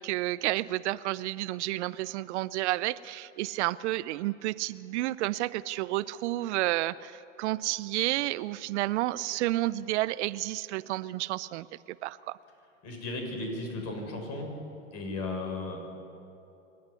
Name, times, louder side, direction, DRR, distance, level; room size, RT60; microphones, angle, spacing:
voice 1, 0.0-11.7 12.0-12.4, right 17 dB, 60° right, 18 dB, 0.6 m, -31 dB
voice 2, 12.8-14.5 14.9-15.8, left 2 dB, 40° left, 2 dB, 6.3 m, -35 dB
25.5 x 11.0 x 9.8 m, 2.8 s
hypercardioid pair, 110°, 39 cm